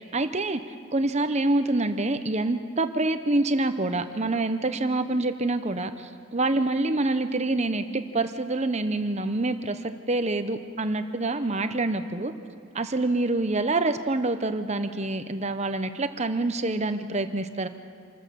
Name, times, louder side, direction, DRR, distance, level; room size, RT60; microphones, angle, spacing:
voice 1, 0.1-0.6 0.9-12.3 12.7-17.7, right 2 dB, 30° right, 9 dB, 0.9 m, -26 dB
27.5 x 13.5 x 7.0 m, 2.3 s
head